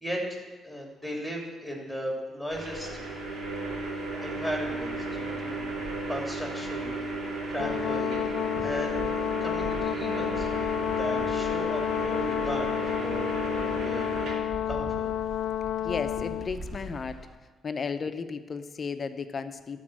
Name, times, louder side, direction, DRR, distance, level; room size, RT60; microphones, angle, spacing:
voice 1, 0.0-3.0 4.2-7.1 7.5-8.1 8.6-10.5 11.0-13.4 13.8-14.1 14.7-15.1, equal, 5° right, -1 dB, 2.9 m, -36 dB
sound 1, 2.5-14.4, right 2 dB, 70° right, 2.6 m, -34 dB
Brass instrument, 7.6-16.5, left 11 dB, 80° left, 0.3 m, -30 dB
Wind, 7.6-17.3, right 2 dB, 40° right, 1.3 m, -44 dB
voice 2, 15.6-17.3 17.6-19.8, left 5 dB, 40° left, 10 dB, 0.7 m, -34 dB
12.5 x 4.4 x 7.6 m, 1.3 s
cardioid pair, 90°, 0 cm